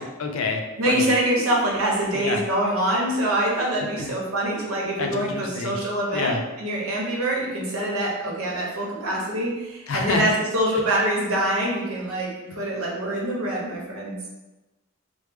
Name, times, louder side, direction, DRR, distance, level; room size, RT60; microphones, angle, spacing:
voice 1, 0.2-1.1 2.1-2.4 4.0-4.1 5.0-5.8 6.1-6.4 9.9-10.2, left 3 dB, 70° left, 4 dB, 0.4 m, -27 dB
voice 2, 0.8-14.3, right 1 dB, 85° right, -3 dB, 0.9 m, -25 dB
3.1 x 2.0 x 3.4 m, 1.1 s
head